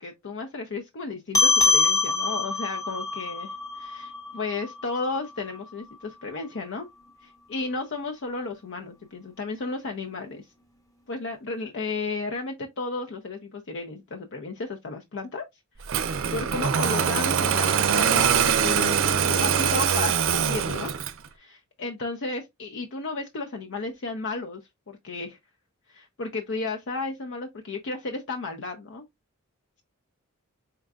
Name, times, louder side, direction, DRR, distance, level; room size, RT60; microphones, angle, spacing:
voice 1, 0.0-6.9 7.2-10.5 11.1-15.4 15.8-21.1 21.3-24.6 24.9-25.4 25.9-29.0, left 3 dB, 60° left, 0.6 m, -33 dB
sound 1, 1.3-6.1, left 3 dB, 15° left, 1.0 m, -25 dB
Engine starting, 15.9-21.3, right 7 dB, 65° right, 0.5 m, -23 dB
4.6 x 3.7 x 2.3 m
head